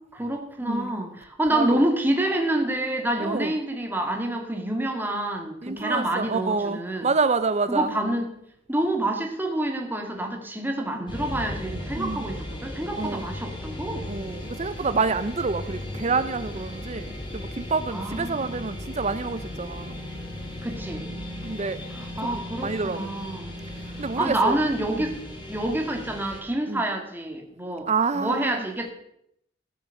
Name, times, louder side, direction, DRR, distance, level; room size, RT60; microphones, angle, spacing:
voice 1, 0.0-7.1 7.7-8.4 8.7-14.1 17.9-18.6 20.6-21.1 21.9-23.5 24.2-25.1 25.5-27.9 28.1-28.9, right 1 dB, 10° right, 1.8 m, -27 dB
voice 2, 0.6-1.0 1.5-1.8 3.2-3.5 5.6-7.9 12.0-12.3 13.0-13.2 14.1-19.9 21.4-21.8 22.3-23.3 24.0-24.6 25.0-25.1 26.7-26.8 27.9-28.6, right 4 dB, 35° right, 0.6 m, -28 dB
sound 1, 11.1-26.4, left 1 dB, 25° left, 2.4 m, -36 dB
15.5 x 7.2 x 6.4 m
head